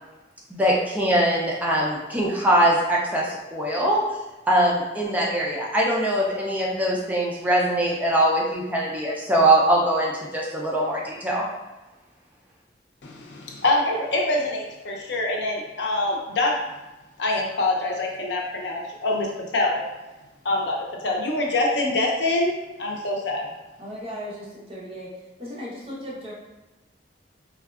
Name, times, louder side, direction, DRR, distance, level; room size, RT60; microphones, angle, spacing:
voice 1, 0.5-4.1 4.5-11.5, right 1 dB, 10° right, -3 dB, 0.4 m, -22 dB
voice 2, 13.0-16.6 17.2-19.8 20.4-20.8 21.0-23.5, left 2 dB, 80° left, 0 dB, 0.6 m, -25 dB
voice 3, 23.8-25.1 25.4-26.3, equal, 35° right, -5 dB, 0.7 m, -36 dB
3.5 x 2.2 x 2.3 m, 1.1 s
head